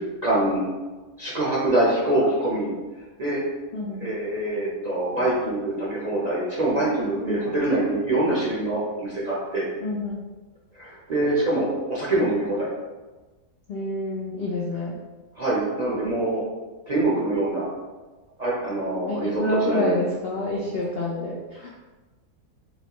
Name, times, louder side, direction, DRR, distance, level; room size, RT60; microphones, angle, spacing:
voice 1, 0.2-0.6 1.2-2.7 3.2-3.4 3.9-9.7 10.7-12.7 15.4-16.4 16.9-17.7 18.4-19.9, right 1 dB, 40° right, -7 dB, 0.6 m, -24 dB
voice 2, 3.7-4.1 7.2-7.6 9.8-10.2 13.7-15.0 19.1-21.7, left 1 dB, 70° left, -4 dB, 0.5 m, -28 dB
4.1 x 3.2 x 2.9 m, 1.2 s
omnidirectional pair, 1.7 m